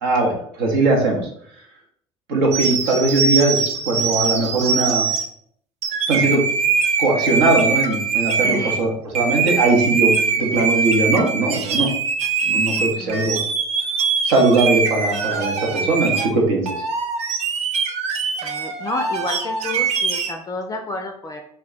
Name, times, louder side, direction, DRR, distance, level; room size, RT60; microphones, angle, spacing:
voice 1, 0.0-1.2 2.3-5.1 6.1-6.4 7.0-11.9 12.4-13.4 14.2-16.7, right 2 dB, 80° right, 0 dB, 0.8 m, -20 dB
sound 1, 2.5-5.3 5.8-8.8 9.1-16.3 16.7-20.3, right 5 dB, 50° right, 0.4 m, -22 dB
voice 2, 8.4-8.8 10.5-10.7 13.0-13.3 18.4-21.4, left 2 dB, 25° left, 4 dB, 0.4 m, -30 dB
2.2 x 2.2 x 3.7 m, 0.67 s
hypercardioid pair, 65°, 14 cm